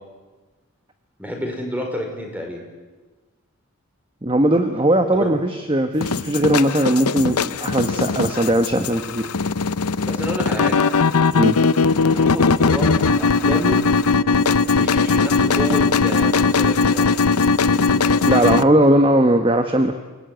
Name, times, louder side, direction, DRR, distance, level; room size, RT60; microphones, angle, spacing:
voice 1, 1.2-2.6 5.2-5.3 10.0-10.8 12.1-13.8 14.7-17.1, equal, 5° right, 2 dB, 5.1 m, -29 dB
voice 2, 4.2-9.3 11.3-11.6 18.3-19.9, right 1 dB, 25° right, 7 dB, 1.2 m, -18 dB
sound 1, 6.0-18.6, left 4 dB, 90° left, 0.8 m, -19 dB
29.0 x 18.0 x 9.2 m, 1.3 s
head